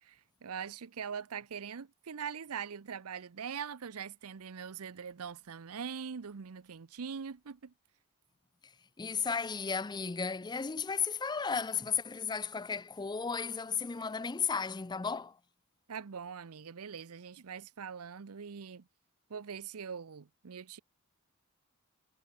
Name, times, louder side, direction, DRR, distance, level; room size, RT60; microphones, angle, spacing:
voice 1, 0.0-7.7 15.9-18.9 19.3-20.8, right 6 dB, 80° right, 0.6 m, -42 dB
voice 2, 9.0-15.4, left 6 dB, 20° left, 0.4 m, -34 dB
head